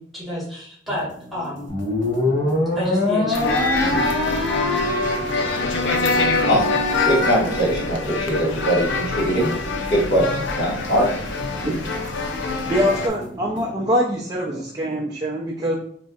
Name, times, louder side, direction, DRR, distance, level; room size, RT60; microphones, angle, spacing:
voice 1, 0.0-1.7 2.7-4.2, left 1 dB, ahead, -8 dB, 1.3 m, -31 dB
sound 1, 0.9-13.8, right 1 dB, 85° right, 0.7 m, -41 dB
sound 2, 1.7-8.2, left 1 dB, 35° left, 1.3 m, -25 dB
sound 3, 3.3-13.1, left 3 dB, 75° left, 0.5 m, -25 dB
voice 2, 7.0-9.6 9.9-11.1, equal, 55° left, -5 dB, 1.3 m, -21 dB
voice 3, 12.7-15.8, equal, 20° right, -3 dB, 0.4 m, -23 dB
4.1 x 2.6 x 2.3 m, 0.62 s
head